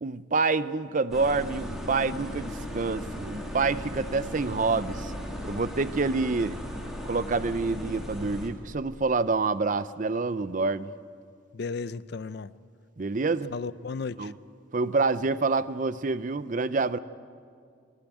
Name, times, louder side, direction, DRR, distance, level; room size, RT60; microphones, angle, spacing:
voice 1, 0.0-5.1 5.4-6.6 7.1-10.9 13.0-13.5 14.2-14.3 14.7-17.0, right 4 dB, 40° right, 0.5 m, -27 dB
sound 1, 1.1-8.5, equal, ahead, 2.4 m, -37 dB
voice 2, 11.5-12.5 13.5-14.3, left 4 dB, 55° left, 0.5 m, -34 dB
24.0 x 12.0 x 9.2 m
head